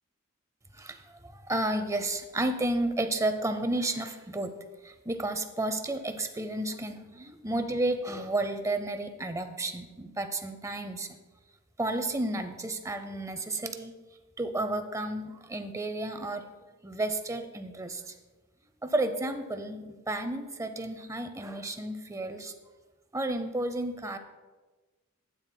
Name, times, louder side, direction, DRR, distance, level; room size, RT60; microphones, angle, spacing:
voice 1, 0.7-11.2 11.8-13.9 14.4-16.5 16.8-18.1 18.8-22.5 23.1-24.2, right 2 dB, 15° right, 8 dB, 0.6 m, -32 dB
12.0 x 9.1 x 2.2 m, 1.2 s
head